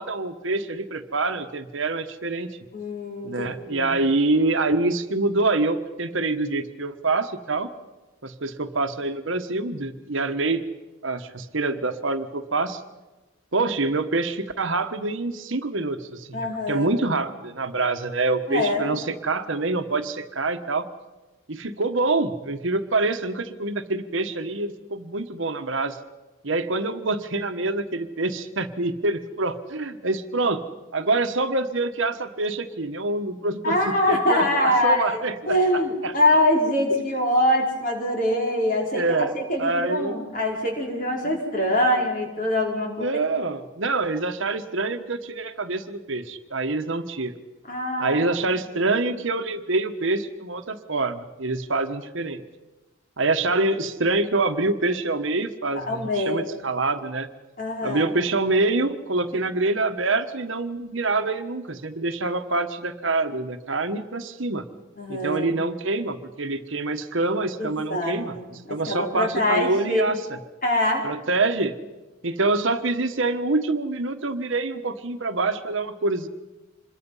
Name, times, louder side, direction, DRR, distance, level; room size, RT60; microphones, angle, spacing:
voice 1, 0.0-2.5 3.2-7.7 8.2-10.6 11.0-12.8 13.5-20.9 21.5-26.0 26.4-30.6 30.9-36.1 38.9-39.3 39.6-40.2 41.2-41.3 42.8-47.4 48.0-52.4 53.2-57.3 57.8-64.6 65.1-70.4 71.0-71.7 72.2-76.3, right 3 dB, 65° right, 8 dB, 1.3 m, -26 dB
voice 2, 2.7-3.9 16.3-16.9 18.5-18.9 33.6-43.2 47.7-48.2 55.7-56.5 57.6-58.1 65.0-65.6 67.6-70.1 70.6-71.1, left 1 dB, 40° left, 0 dB, 4.5 m, -24 dB
26.5 x 22.0 x 5.6 m, 1.2 s
head